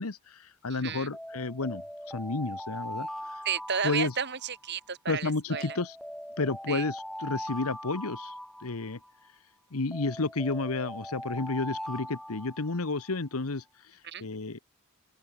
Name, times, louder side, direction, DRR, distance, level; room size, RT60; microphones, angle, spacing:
voice 1, 0.0-1.8 2.1-3.1 3.8-4.1 5.1-6.0 6.4-8.3 8.6-9.0 9.7-13.6 14.2-14.6, left 3 dB, 80° left, 1.2 m, -31 dB
Alarm, 1.1-4.8 5.5-9.2 9.9-13.1, equal, ahead, 2.0 m, -41 dB
voice 2, 3.4-5.8 6.7-6.8 14.0-14.3, right 7 dB, 50° right, 2.5 m, -32 dB
open air
head